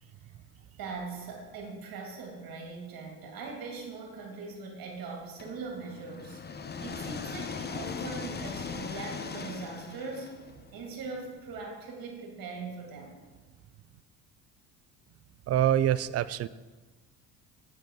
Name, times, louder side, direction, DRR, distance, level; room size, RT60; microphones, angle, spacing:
voice 1, 0.8-10.4 10.7-13.2, right 4 dB, 55° right, 0 dB, 2.6 m, -41 dB
sound 1, 5.4-11.3, left 5 dB, 25° left, 0.8 m, -39 dB
voice 2, 15.5-16.5, right 11 dB, 40° right, 17 dB, 0.4 m, -25 dB
8.3 x 8.1 x 4.0 m, 1.3 s
supercardioid pair, 75°, 41 cm